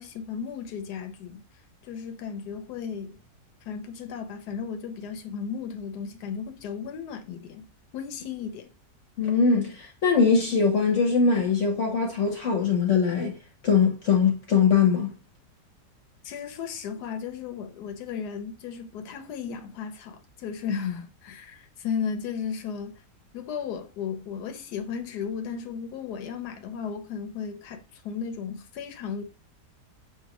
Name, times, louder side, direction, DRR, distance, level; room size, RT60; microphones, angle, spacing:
voice 1, 0.0-1.4 1.8-3.2 3.6-7.7 7.9-8.7 16.2-23.0 23.3-29.2, left 7 dB, 75° left, 1.2 m, -35 dB
voice 2, 9.2-13.3 13.6-15.1, left 5 dB, 55° left, 1.0 m, -22 dB
6.8 x 2.5 x 2.9 m
omnidirectional pair, 1.8 m